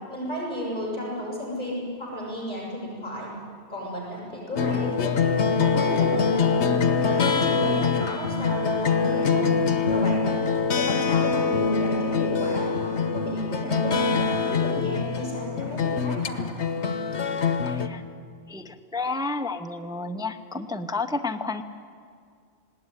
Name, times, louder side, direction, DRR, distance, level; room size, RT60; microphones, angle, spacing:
voice 1, 0.1-3.3 3.7-5.2 5.6-9.4 9.9-10.4 10.7-16.4, equal, 45° left, -3 dB, 7.2 m, -33 dB
sound 1, 4.6-17.9, left 5 dB, 85° left, 1.3 m, -24 dB
voice 2, 17.6-18.0 18.5-21.6, left 3 dB, 5° right, 7 dB, 0.7 m, -31 dB
19.5 x 17.5 x 9.9 m, 2.3 s
omnidirectional pair, 1.1 m